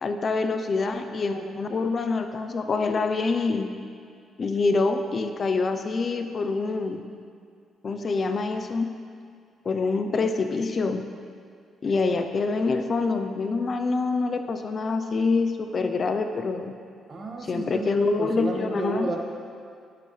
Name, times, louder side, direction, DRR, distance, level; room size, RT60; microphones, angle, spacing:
voice 1, 0.0-3.7 4.4-7.0 7.8-8.9 9.6-11.0 11.8-16.7 17.5-19.1, left 3 dB, 45° left, 7 dB, 0.7 m, -26 dB
voice 2, 17.1-19.2, right 2 dB, 40° right, 0 dB, 1.7 m, -32 dB
20.0 x 7.8 x 3.3 m, 2.2 s
cardioid pair, 90°, 0 cm